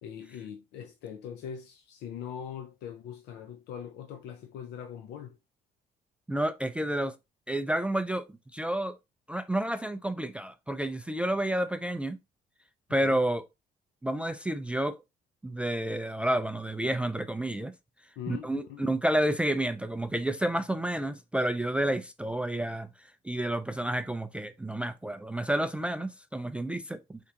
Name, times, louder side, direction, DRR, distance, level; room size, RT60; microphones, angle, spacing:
voice 1, 0.0-5.4 13.0-13.2 18.2-18.8, left 8 dB, 85° left, 0.6 m, -41 dB
voice 2, 6.3-7.2 7.5-8.3 8.5-9.0 9.3-12.2 12.9-13.4 14.0-15.0 15.4-17.7 18.3-27.2, right 1 dB, 5° right, 0.3 m, -30 dB
4.8 x 3.6 x 2.8 m
cardioid pair, 110°, 17 cm